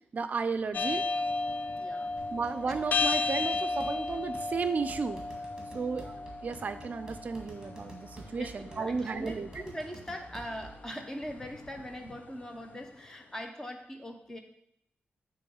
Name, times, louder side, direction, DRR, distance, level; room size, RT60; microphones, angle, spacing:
voice 1, 0.1-1.0 2.3-5.2 5.7-9.5, right 5 dB, 40° right, 10 dB, 0.5 m, -34 dB
sound 1, 0.7-12.9, left 3 dB, 45° left, 0.4 m, -35 dB
voice 2, 1.8-2.1 8.3-14.4, equal, 15° left, 4 dB, 0.8 m, -41 dB
sound 2, 2.2-10.9, right 2 dB, 15° right, 1.8 m, -50 dB
8.3 x 3.1 x 6.3 m, 0.78 s
wide cardioid pair, 155°, 4 cm